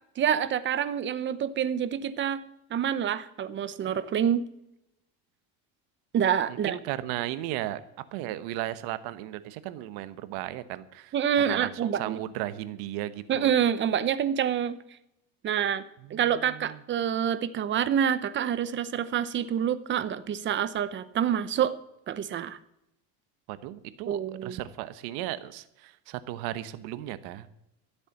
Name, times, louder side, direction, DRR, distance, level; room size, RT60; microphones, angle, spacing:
voice 1, 0.2-2.4 2.7-4.4 6.1-6.8 11.1-12.2 13.3-14.8 15.4-15.8 16.1-21.7 22.1-22.6 24.1-24.6, right 9 dB, 30° right, 14 dB, 0.7 m, -27 dB
voice 2, 6.5-7.8 8.1-11.1 11.5-13.5 16.1-16.2 16.5-16.8 23.5-27.5, right 14 dB, 70° right, 13 dB, 1.1 m, -35 dB
13.5 x 8.2 x 7.1 m, 0.83 s
cardioid pair, 150°, 39 cm